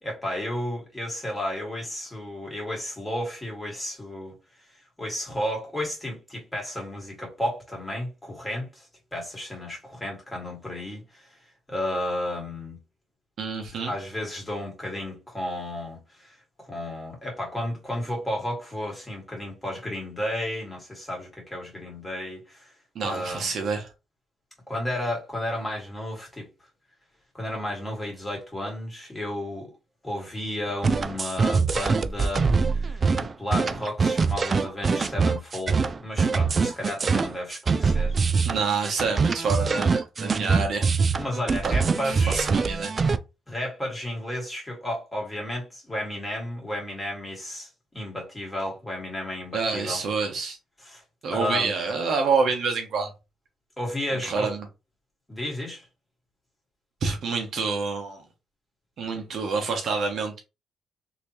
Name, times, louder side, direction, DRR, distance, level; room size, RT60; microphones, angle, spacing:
voice 1, 0.0-4.4 5.0-11.4 11.7-12.8 13.8-22.7 23.0-23.5 24.7-26.5 27.3-29.7 30.0-38.2 41.2-42.5 43.5-50.0 50.8-51.0 51.3-51.7 53.8-54.5 55.3-55.9, left 1 dB, 15° left, 2.0 m, -33 dB
voice 2, 13.4-13.9 22.9-23.9 38.4-40.9 41.6-42.9 49.5-50.6 51.2-53.1 54.1-54.6 57.0-58.2 59.0-60.4, right 4 dB, 60° right, 1.1 m, -27 dB
sound 1, 30.8-43.2, right 4 dB, 40° right, 0.3 m, -23 dB
3.2 x 3.0 x 3.0 m
cardioid pair, 90°, 0 cm